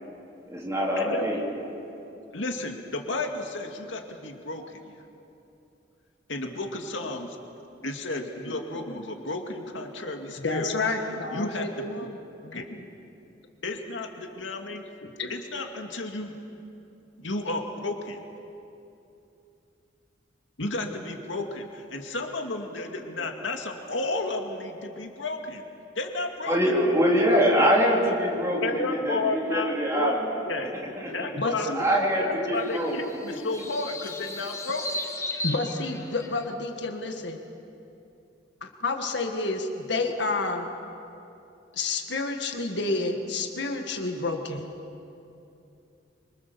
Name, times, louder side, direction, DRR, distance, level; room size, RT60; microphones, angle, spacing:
voice 1, 0.5-1.4 26.5-30.3 31.0-31.1 31.7-33.0, equal, 15° right, -3 dB, 3.9 m, -24 dB
voice 2, 2.3-5.0 6.3-7.4 7.8-10.7 11.1-12.1 12.5-12.9 13.6-14.8 15.3-16.3 17.2-18.2 20.6-25.6 26.0-26.6 28.6-30.1 30.4-30.7 31.1-31.7 32.2-35.0, left 2 dB, 80° left, 3 dB, 2.2 m, -32 dB
voice 3, 10.4-12.2 12.4-12.6 15.0-15.3 31.4-31.8 35.4-37.4 38.6-40.7 41.7-44.7, left 3 dB, 65° left, 4 dB, 1.9 m, -29 dB
sound 1, 32.5-36.5, left 1 dB, 15° left, 1.4 m, -36 dB
26.5 x 25.0 x 7.1 m, 2.8 s
head